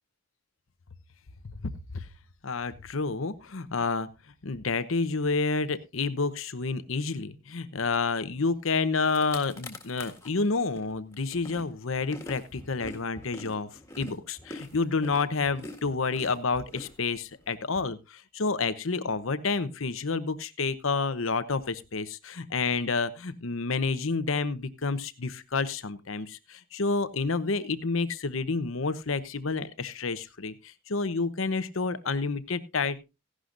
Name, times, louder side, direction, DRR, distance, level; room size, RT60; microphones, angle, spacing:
voice 1, 1.6-2.1 2.4-4.1 4.4-13.7 14.0-33.0, left 4 dB, 80° left, 13 dB, 0.9 m, -29 dB
sound 1, 8.7-8.8 9.0-10.3 10.8-17.5, left 2 dB, 15° left, 1.8 m, -45 dB
16.0 x 11.5 x 2.6 m, 0.26 s
head